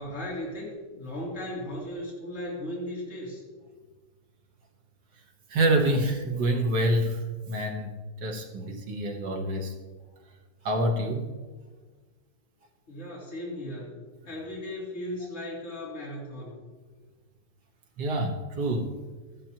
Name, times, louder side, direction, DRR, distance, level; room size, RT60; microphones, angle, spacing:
voice 1, 0.0-3.4 12.9-16.7, left 1 dB, 40° left, -6 dB, 3.3 m, -37 dB
voice 2, 5.5-7.2 7.5-7.9 8.2-9.7 10.7-11.3 18.0-18.9, right 1 dB, 75° right, 2 dB, 1.9 m, -26 dB
14.0 x 10.5 x 2.9 m, 1.4 s
omnidirectional pair, 1.9 m